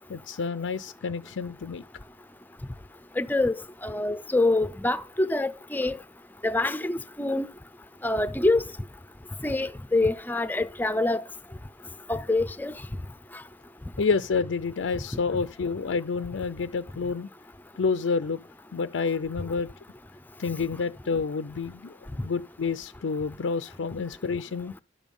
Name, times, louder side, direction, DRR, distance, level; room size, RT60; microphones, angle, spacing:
voice 1, 0.1-1.8 14.0-17.3 17.7-18.4 18.7-19.7 20.4-24.7, left 5 dB, 75° left, 0.5 m, -29 dB
voice 2, 3.2-3.5 3.8-5.9 6.4-7.5 8.0-8.6 9.4-11.2 12.1-12.7, left 2 dB, 10° left, 0.6 m, -25 dB
11.0 x 7.2 x 5.4 m
head